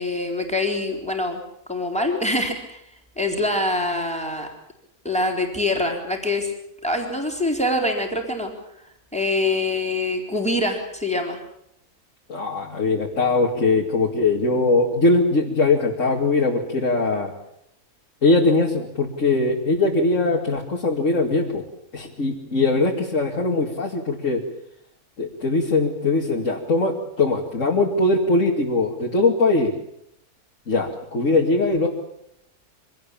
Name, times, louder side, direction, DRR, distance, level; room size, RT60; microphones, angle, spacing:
voice 1, 0.0-1.4 1.7-2.8 3.2-4.5 5.0-6.5 6.8-8.5 9.1-11.4, left 2 dB, 5° left, 2 dB, 3.9 m, -24 dB
voice 2, 12.3-17.3 18.2-21.6 21.9-24.4 25.2-29.7 30.7-31.9, left 3 dB, 55° left, -1 dB, 2.7 m, -21 dB
25.0 x 18.0 x 8.7 m, 0.77 s
omnidirectional pair, 1.6 m